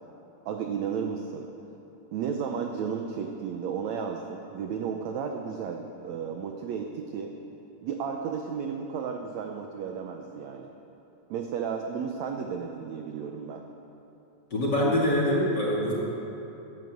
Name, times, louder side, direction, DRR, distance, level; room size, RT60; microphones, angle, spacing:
voice 1, 0.5-1.5 2.1-7.3 7.8-10.7 11.3-13.6, right 6 dB, 75° right, 3 dB, 1.6 m, -33 dB
voice 2, 14.5-15.9, left 1 dB, 30° left, -5 dB, 2.6 m, -24 dB
15.5 x 10.5 x 7.7 m, 3.0 s
omnidirectional pair, 4.2 m